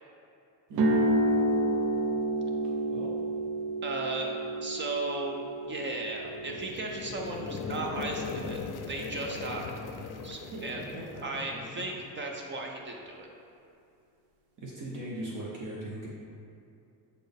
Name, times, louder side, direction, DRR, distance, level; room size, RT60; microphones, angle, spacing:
sound 1, 0.7-8.7, right 1 dB, 75° right, 0.7 m, -30 dB
voice 1, 3.8-4.3 4.6-5.4 5.7-8.6 8.9-9.7 10.2-11.0 11.2-13.3, right 2 dB, 30° right, 1 dB, 0.4 m, -36 dB
sound 2, 6.0-12.0, left 4 dB, 55° left, 0.6 m, -39 dB
voice 2, 10.5-11.8 14.6-16.1, right 1 dB, 50° right, -4 dB, 0.8 m, -40 dB
6.5 x 4.1 x 3.5 m, 2.6 s
cardioid pair, 155°, 39 cm